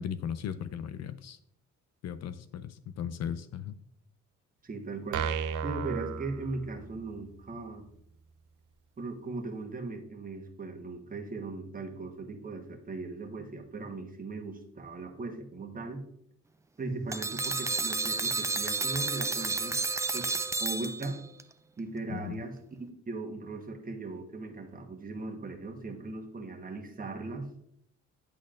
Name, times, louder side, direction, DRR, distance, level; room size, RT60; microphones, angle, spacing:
voice 1, 0.0-1.4 2.0-3.8 22.1-22.4, left 8 dB, 60° left, 13 dB, 0.5 m, -37 dB
voice 2, 4.6-5.3 5.6-7.9 9.0-16.0 16.8-19.8 20.1-20.3 20.6-21.2 21.8-22.6 23.1-27.5, right 3 dB, 30° right, 3 dB, 1.2 m, -38 dB
sound 1, 5.1-7.1, right 7 dB, 80° right, 0.6 m, -34 dB
sound 2, 17.1-21.4, right 4 dB, 10° right, 0.3 m, -31 dB
10.5 x 4.2 x 2.5 m, 0.72 s
cardioid pair, 90°, 30 cm